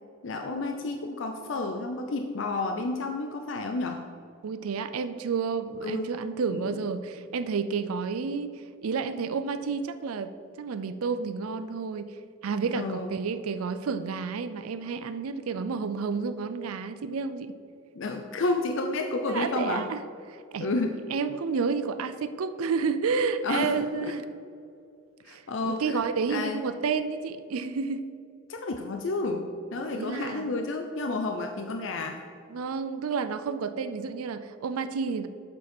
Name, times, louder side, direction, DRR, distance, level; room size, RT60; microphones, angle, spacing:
voice 1, 0.2-4.1 5.8-6.1 6.5-6.7 12.7-13.1 17.9-19.9 20.6-21.0 23.4-23.7 24.0-24.1 25.2-26.0 26.3-26.6 28.5-32.2, left 2 dB, 60° left, 4 dB, 0.5 m, -31 dB
voice 2, 4.4-8.5 8.8-10.3 10.6-12.1 12.4-17.6 19.3-20.0 20.3-20.7 21.1-24.2 25.3-28.0 29.9-30.5 32.5-35.3, right 5 dB, 85° right, 12 dB, 0.4 m, -30 dB
7.5 x 7.1 x 4.3 m, 2.5 s
head